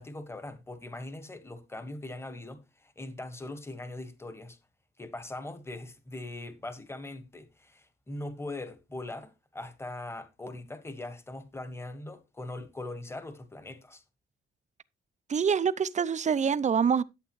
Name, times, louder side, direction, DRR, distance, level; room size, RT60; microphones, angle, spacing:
voice 1, 0.0-4.6 5.0-14.0, left 2 dB, 10° left, 1.5 m, -41 dB
voice 2, 15.3-17.0, right 6 dB, 35° right, 0.6 m, -25 dB
11.5 x 7.5 x 3.1 m
cardioid pair, 90°, 20 cm